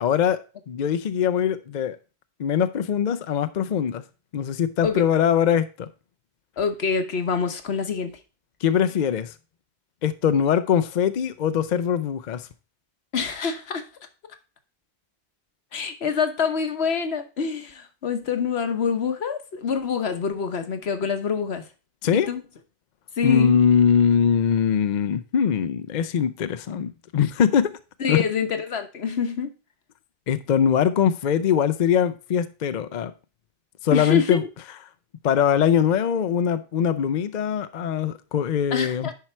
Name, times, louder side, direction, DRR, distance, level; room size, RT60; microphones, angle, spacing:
voice 1, 0.0-0.4 0.7-2.0 2.4-4.0 4.3-5.9 8.6-9.3 10.0-12.5 22.0-22.3 23.2-27.8 28.1-28.2 30.3-33.1 33.8-34.4 35.2-39.1, left 8 dB, 55° left, 0.6 m, -22 dB
voice 2, 6.6-8.2 13.1-13.8 15.7-21.7 22.1-22.4 23.2-23.6 28.0-29.5 33.9-34.5 38.7-39.1, left 6 dB, 75° left, 1.3 m, -26 dB
10.5 x 4.7 x 4.3 m
omnidirectional pair, 1.1 m